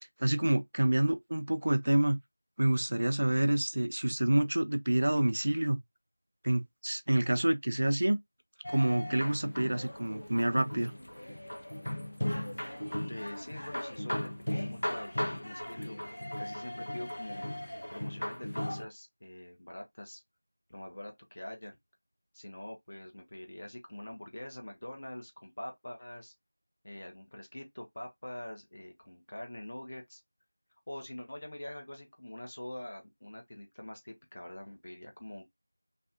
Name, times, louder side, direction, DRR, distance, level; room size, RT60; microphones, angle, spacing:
voice 1, 0.2-2.2 2.6-5.8 6.4-8.2 8.7-10.9, right 1 dB, 30° right, 0.3 m, -28 dB
sound 1, 8.6-18.8, left 1 dB, 70° left, 0.7 m, -37 dB
voice 2, 13.1-16.0 16.4-17.6 17.9-20.2 20.7-21.8 22.3-26.3 26.8-30.2 30.9-35.4, left 1 dB, 25° left, 0.6 m, -45 dB
3.3 x 2.5 x 2.3 m
figure-of-eight pair, 180°, 0 cm